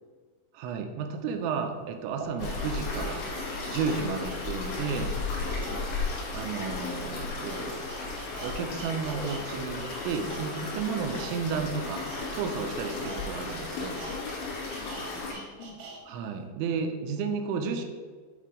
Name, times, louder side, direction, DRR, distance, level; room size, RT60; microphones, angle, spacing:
voice 1, 0.5-3.2 3.7-5.1 6.3-7.8 8.4-12.0 12.3-14.0 16.1-17.9, right 5 dB, 85° right, 5 dB, 2.9 m, -32 dB
sound 1, 1.3-1.4 2.1-9.4 9.7-16.0 16.4-16.5, right 3 dB, 70° right, 2.1 m, -46 dB
sound 2, 2.4-15.3, left 3 dB, 65° left, 2.8 m, -35 dB
voice 2, 5.3-5.8 12.5-12.7 14.1-15.8, left 6 dB, 90° left, -4 dB, 3.3 m, -46 dB
8.4 x 3.3 x 4.9 m, 1.5 s
omnidirectional pair, 5.4 m